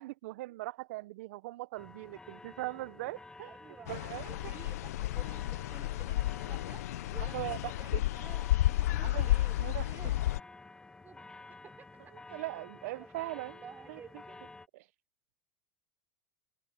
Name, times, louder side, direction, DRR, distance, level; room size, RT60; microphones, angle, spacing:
voice 1, 0.0-3.5 3.9-4.3 7.3-8.0 9.0-9.3 9.6-9.9 12.3-13.6 13.9-14.0 14.7-14.9, right 19 dB, 75° right, 0.5 m, -40 dB
sound 1, 1.8-14.7, left 3 dB, 10° left, 1.3 m, -52 dB
voice 2, 3.5-3.9 4.2-6.8 7.1-9.5 9.8-10.2 11.0-12.0 12.3-12.4 12.9-14.5, right 7 dB, 25° right, 3.0 m, -53 dB
sound 2, 3.9-10.4, left 15 dB, 90° left, 0.4 m, -32 dB
open air
supercardioid pair, 130°, 8 cm